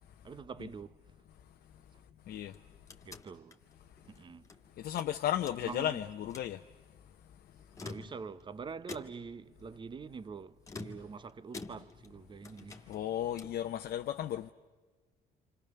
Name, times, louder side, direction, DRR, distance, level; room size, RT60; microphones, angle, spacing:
voice 1, 0.2-1.0 3.0-3.6 4.1-4.4 5.6-6.0 7.8-12.9, right 5 dB, 30° right, 0.8 m, -45 dB
sound 1, 2.5-4.6 4.9-5.9 6.2-6.6 7.6-8.4 8.9-9.4 10.6-12.2 12.4-13.7, left 3 dB, 20° left, 2.1 m, -48 dB
voice 2, 4.8-6.6 12.9-14.5, left 11 dB, 60° left, 0.8 m, -34 dB
28.5 x 27.5 x 6.8 m
cardioid pair, 110°, 17 cm